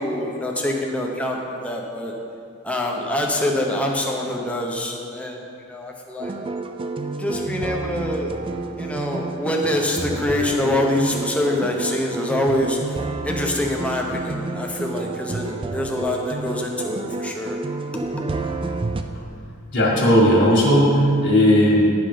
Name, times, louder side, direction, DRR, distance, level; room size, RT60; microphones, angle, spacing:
voice 1, 0.0-2.1 2.6-5.4 5.7-6.3 7.2-8.3 8.8-17.6 17.9-18.2, left 1 dB, 5° left, 0 dB, 0.7 m, -25 dB
sound 1, 6.2-19.0, right 3 dB, 25° right, 0.3 m, -29 dB
voice 2, 19.7-21.9, equal, 55° left, -3 dB, 1.9 m, -16 dB
10.5 x 5.7 x 5.0 m, 2.4 s
head